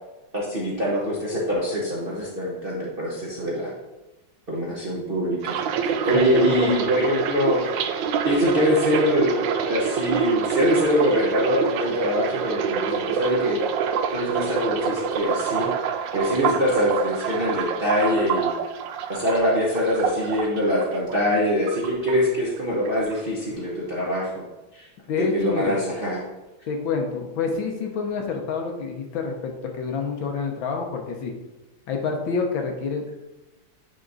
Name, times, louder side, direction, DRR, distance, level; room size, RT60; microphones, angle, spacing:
voice 1, 0.3-3.7 4.5-7.7 8.2-13.6 14.1-15.7 16.1-18.5 19.1-24.4 24.7-24.9 25.2-26.2, equal, 40° right, -6 dB, 0.9 m, -24 dB
sound 1, 5.4-21.4 21.7-22.6 22.8-23.2, right 6 dB, 75° right, 1.2 m, -27 dB
voice 2, 6.1-6.7 25.1-25.8 26.7-31.3 31.9-33.1, left 5 dB, 70° left, 2 dB, 1.6 m, -28 dB
8.8 x 3.6 x 3.9 m, 1.0 s
omnidirectional pair, 2.3 m